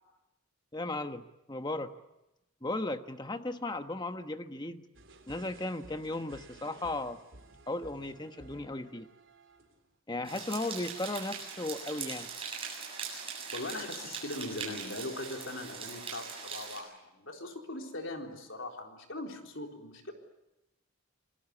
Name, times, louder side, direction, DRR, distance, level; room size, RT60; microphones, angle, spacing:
voice 1, 0.7-1.9 2.6-4.9 5.3-7.2 7.7-9.1 10.1-12.3, left 2 dB, 20° left, 8 dB, 1.2 m, -36 dB
sound 1, 4.9-9.9, right 2 dB, 60° right, 3.9 m, -55 dB
sound 2, 10.2-16.8, right 6 dB, 25° right, 7.8 m, -41 dB
voice 2, 13.5-20.1, left 2 dB, 60° left, 2 dB, 4.1 m, -40 dB
28.5 x 21.5 x 8.4 m, 0.93 s
head